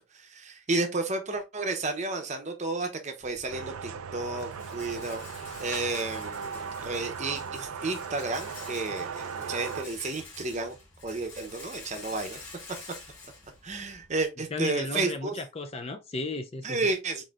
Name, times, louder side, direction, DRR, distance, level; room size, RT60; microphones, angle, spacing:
voice 1, 0.0-10.8 11.0-12.4 13.6-15.4 16.6-17.2, right 3 dB, 35° right, 0.7 m, -32 dB
Rattle, 3.2-14.2, left 3 dB, 75° left, 2.1 m, -47 dB
sound 1, 3.5-9.9, right 6 dB, 85° right, 0.4 m, -38 dB
voice 2, 14.5-16.8, left 3 dB, 30° left, 0.4 m, -34 dB
4.2 x 3.6 x 2.4 m
head